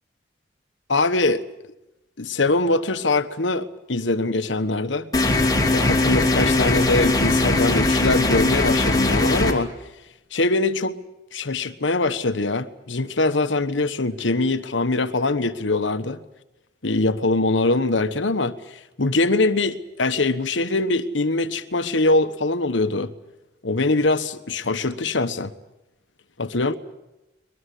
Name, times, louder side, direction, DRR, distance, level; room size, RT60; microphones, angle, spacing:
voice 1, 0.9-1.4 2.2-5.1 5.7-9.7 10.3-11.0 11.3-16.2 16.8-23.1 23.6-25.5 26.4-26.7, left 2 dB, 85° left, 1.3 m, -22 dB
sound 1, 5.1-9.5, left 2 dB, 20° left, 2.6 m, -20 dB
22.5 x 22.0 x 8.5 m
head